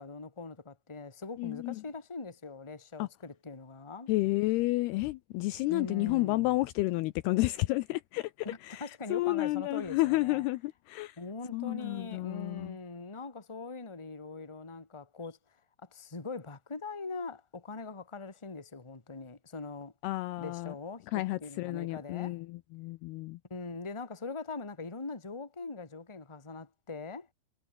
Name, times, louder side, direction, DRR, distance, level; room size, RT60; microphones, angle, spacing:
voice 1, 0.0-4.1 5.7-6.6 8.4-10.4 11.2-15.4 15.9-19.9 20.4-22.4 23.5-27.3, left 3 dB, 15° left, 1.2 m, -42 dB
voice 2, 1.4-1.8 3.0-3.1 4.1-8.3 8.6-8.9 9.1-11.2 11.5-12.8 20.0-20.7 21.1-23.4, left 19 dB, 80° left, 2.4 m, -31 dB
omnidirectional pair, 5.0 m